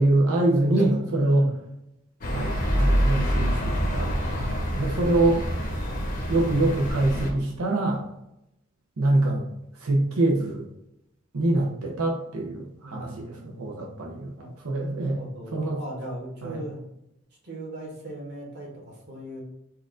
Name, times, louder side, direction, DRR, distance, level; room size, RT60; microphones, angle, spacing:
voice 1, 0.0-1.5 2.3-4.1 4.8-5.4 6.3-8.0 9.0-9.4 9.7-10.6 11.3-14.3 14.6-15.2 15.5-15.8 16.4-16.6, right 2 dB, 90° right, -1 dB, 0.7 m, -24 dB
voice 2, 0.8-1.5 12.8-14.1 14.4-14.5 15.1-16.8 17.4-19.4, right 1 dB, 50° right, -3 dB, 1.2 m, -38 dB
sound 1, 2.2-7.3, equal, 40° left, 0.7 m, -26 dB
4.4 x 2.4 x 3.7 m, 0.84 s
head